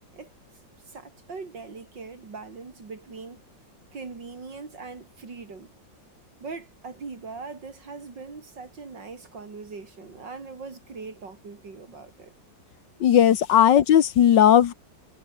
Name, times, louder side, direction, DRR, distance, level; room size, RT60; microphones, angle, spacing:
voice 1, 0.9-3.4 3.9-5.7 6.4-12.3, right 4 dB, 70° right, 3.9 m, -41 dB
voice 2, 13.0-14.7, left 10 dB, 70° left, 1.7 m, -17 dB
omnidirectional pair, 2.0 m